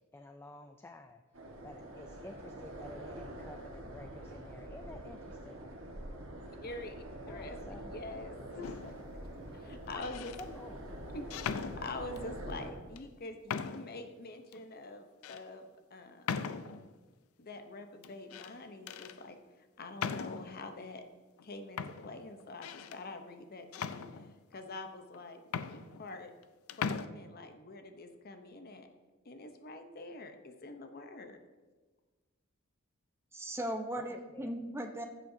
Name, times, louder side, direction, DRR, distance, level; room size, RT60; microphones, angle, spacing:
voice 1, 0.1-1.2 1.6-5.6 7.3-8.1 8.4-8.7 9.9-10.0 10.4-11.0 34.0-34.5, left 2 dB, 10° left, 6 dB, 0.3 m, -51 dB
sound 1, 1.3-12.7, right 1 dB, 70° right, 1.5 m, -46 dB
voice 2, 6.4-8.9 9.5-10.4 11.1-16.4 17.4-21.0 21.4-24.0 24.5-26.3 26.8-28.9 29.2-31.4, left 2 dB, 45° left, 7 dB, 0.8 m, -46 dB
sound 2, 8.6-9.1 9.9-10.5 11.3-12.3 13.0-13.1 13.5-14.0 14.5-14.6 15.2-15.4 16.3-16.9 18.0-18.5 18.9-19.2 20.0-20.6 21.4-21.5 21.8-23.0 23.7-24.6 25.1-25.2 25.5-26.4 26.7-27.1, left 6 dB, 85° left, 0.4 m, -39 dB
voice 3, 33.3-35.1, right 1 dB, 10° right, 4 dB, 0.7 m, -37 dB
15.5 x 7.5 x 2.7 m, 1.3 s
head